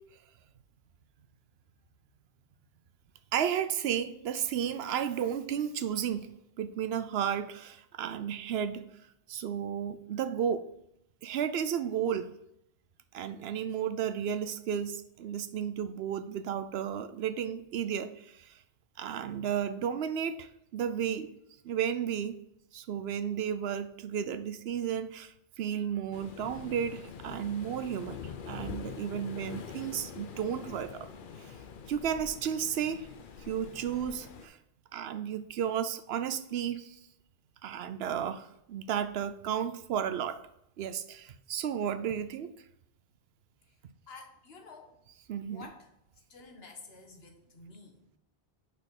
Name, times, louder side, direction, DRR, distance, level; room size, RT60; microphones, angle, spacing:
voice 1, 3.3-6.3 6.6-8.9 9.3-10.7 11.2-12.3 13.1-18.6 19.0-21.3 21.6-22.4 22.7-31.1 31.4-31.6 31.9-33.1 33.4-34.6 34.9-37.0 37.6-40.4 40.8-42.5 45.3-45.7, right 8 dB, 80° right, 11 dB, 0.8 m, -33 dB
Waves surf, 26.1-34.5, left 6 dB, 60° left, 0.8 m, -44 dB
voice 2, 44.1-45.0 45.4-45.9 46.3-48.1, left 3 dB, 75° left, 2 dB, 1.4 m, -50 dB
5.4 x 4.5 x 6.0 m, 0.79 s
omnidirectional pair, 1.0 m